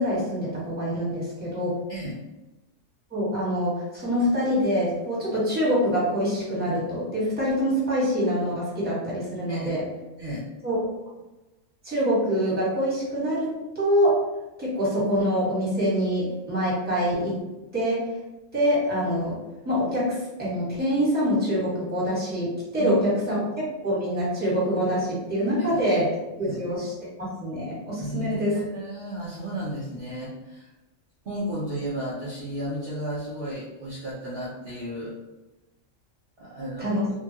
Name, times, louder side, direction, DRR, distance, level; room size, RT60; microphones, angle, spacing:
voice 1, 0.0-1.7 3.1-9.8 10.6-10.8 11.8-14.2 14.6-17.4 17.7-18.0 18.5-19.4 19.6-26.1 26.4-26.9 27.2-28.6 36.8-37.0, equal, 10° right, -8 dB, 1.1 m, -25 dB
voice 2, 1.9-2.2 9.5-9.7 10.2-10.4 22.8-23.0 23.3-23.4 25.6-26.0 26.4-26.6 28.0-30.7 31.2-35.2 36.4-36.9, right 1 dB, 55° right, -7 dB, 0.8 m, -33 dB
3.1 x 2.2 x 2.7 m, 1.0 s
omnidirectional pair, 1.3 m